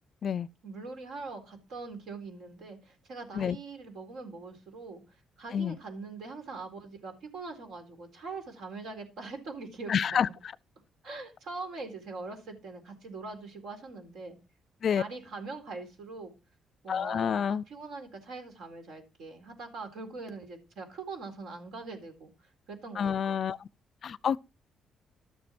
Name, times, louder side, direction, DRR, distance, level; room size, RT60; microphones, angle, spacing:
voice 1, 0.6-10.3 11.0-14.4 15.0-16.3 16.8-23.4, right 3 dB, 80° right, 4.0 m, -42 dB
voice 2, 9.9-10.3 14.8-15.0 16.9-17.6 23.0-23.7 24.0-24.4, left 7 dB, 55° left, 0.4 m, -28 dB
12.5 x 7.2 x 4.5 m
cardioid pair, 90°, 0 cm